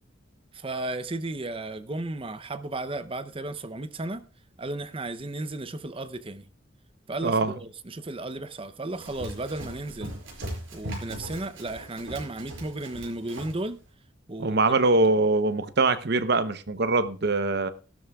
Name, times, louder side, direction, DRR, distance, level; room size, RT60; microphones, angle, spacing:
voice 1, 0.5-4.2 4.6-6.5 7.1-10.1 10.7-13.8 14.3-14.6, right 2 dB, 30° right, 0.7 m, -34 dB
voice 2, 7.2-7.5 14.4-17.7, right 3 dB, 60° right, 0.9 m, -23 dB
Run, 8.9-13.6, right 1 dB, 85° right, 5.5 m, -39 dB
16.0 x 12.5 x 2.4 m
head